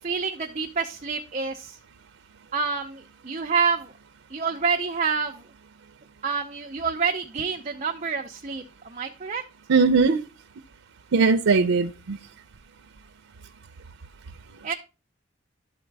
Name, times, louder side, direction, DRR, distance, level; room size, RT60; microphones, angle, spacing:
voice 1, 0.0-1.8 2.5-3.9 4.3-5.4 6.2-9.4 14.6-14.7, right 5 dB, 35° right, 0.6 m, -28 dB
voice 2, 9.7-10.2 11.1-12.2, right 4 dB, 80° right, 0.5 m, -19 dB
12.0 x 4.0 x 3.4 m
head